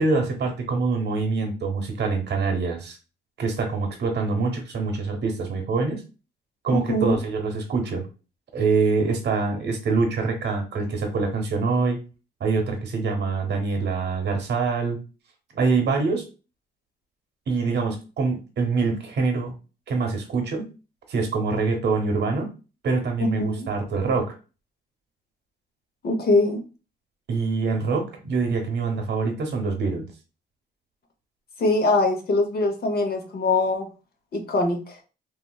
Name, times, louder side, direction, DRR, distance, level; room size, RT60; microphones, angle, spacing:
voice 1, 0.0-3.0 3.4-6.0 6.6-8.0 8.5-12.0 12.4-15.0 15.5-16.2 17.5-19.5 19.9-20.7 21.1-22.5 22.8-24.3 27.3-30.1, right 4 dB, 60° right, 4 dB, 0.9 m, -25 dB
voice 2, 23.2-23.6 26.0-26.6 31.6-33.9 34.3-35.0, left 2 dB, 50° left, 3 dB, 0.8 m, -22 dB
3.0 x 2.5 x 2.3 m, 0.33 s
cardioid pair, 90°, 20 cm